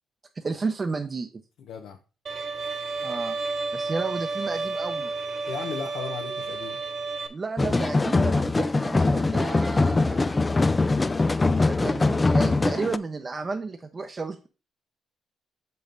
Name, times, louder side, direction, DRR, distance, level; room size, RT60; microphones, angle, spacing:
voice 1, 0.4-1.3 3.0-3.4 3.7-5.1 7.3-10.3 11.6-14.5, right 4 dB, 30° right, 5 dB, 0.6 m, -32 dB
voice 2, 1.6-2.0 5.5-6.8, left 6 dB, 80° left, 4 dB, 0.8 m, -35 dB
Bowed string instrument, 2.3-7.3, right 3 dB, 50° right, 1.3 m, -31 dB
sound 1, 7.6-13.0, left 3 dB, 20° left, 0.3 m, -22 dB
6.8 x 5.4 x 3.8 m, 0.33 s
cardioid pair, 90°, 0 cm